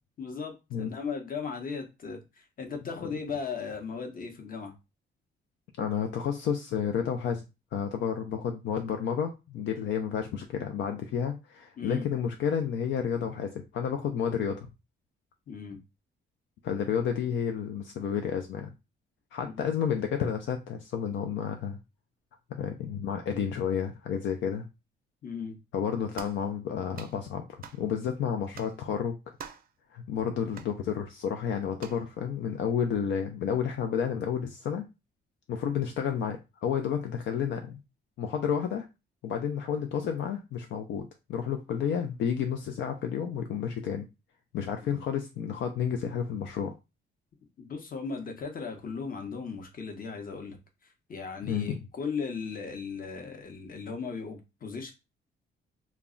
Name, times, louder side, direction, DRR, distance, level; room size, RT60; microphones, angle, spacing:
voice 1, 0.2-4.7 11.8-12.0 15.5-15.8 19.4-19.7 25.2-25.6 44.8-45.0 47.6-50.6 51.1-54.9, left 5 dB, 45° left, 0.9 m, -37 dB
voice 2, 5.8-7.4 7.7-14.7 16.6-18.7 19.3-21.8 22.5-24.7 25.7-29.2 29.9-34.9 35.5-37.8 38.2-38.9 39.2-44.1 44.5-46.7 51.4-51.8, left 7 dB, 70° left, 0.4 m, -31 dB
sound 1, 26.1-26.4 26.9-27.2 27.6-27.8 28.5-28.8 29.4-29.7 30.5-30.7 31.8-32.0, right 7 dB, 50° right, 0.5 m, -45 dB
2.2 x 2.1 x 3.7 m
cardioid pair, 90°, 20 cm